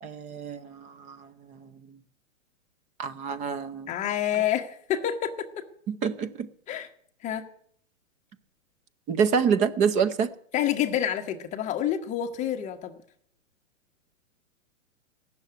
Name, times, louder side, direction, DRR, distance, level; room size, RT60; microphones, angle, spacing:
voice 1, 0.0-2.0 3.0-3.9 5.9-6.5 9.1-10.3, right 6 dB, 20° right, 0.7 m, -27 dB
voice 2, 3.9-5.6 6.7-6.9 7.2-7.5 10.5-12.9, left 10 dB, 20° left, 1.1 m, -28 dB
16.0 x 7.0 x 9.5 m
hypercardioid pair, 145°, 39 cm